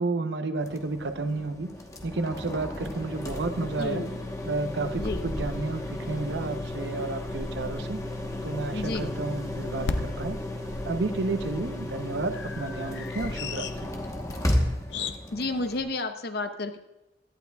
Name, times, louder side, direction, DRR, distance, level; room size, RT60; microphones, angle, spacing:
voice 1, 0.0-1.7 2.0-4.0 4.4-8.0 8.4-10.4 10.8-13.9, right 3 dB, 80° right, 9 dB, 0.7 m, -31 dB
sound 1, 0.6-15.8, left 1 dB, 20° left, 1.0 m, -34 dB
voice 2, 3.6-4.2 5.0-5.3 8.7-9.2 15.0-16.8, left 2 dB, 60° left, 8 dB, 0.8 m, -32 dB
sound 2, 9.9-15.2, left 4 dB, 90° left, 0.6 m, -37 dB
17.0 x 12.0 x 2.3 m, 0.97 s
head